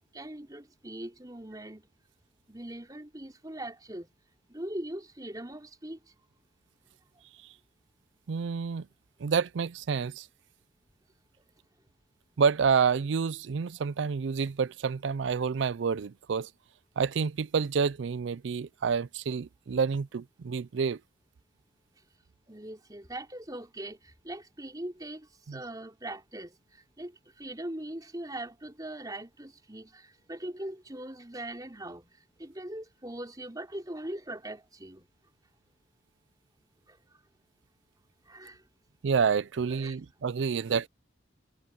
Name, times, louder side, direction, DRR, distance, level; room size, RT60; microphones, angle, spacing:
voice 1, 0.1-1.8 2.5-4.1 4.5-6.0 22.5-35.1 36.9-37.0 38.3-38.6 39.7-40.0, right 1 dB, 20° right, 4.4 m, -41 dB
voice 2, 8.3-8.9 9.2-10.3 12.4-16.5 17.0-21.0 25.5-25.6 39.0-40.9, right 6 dB, 70° right, 0.4 m, -28 dB
head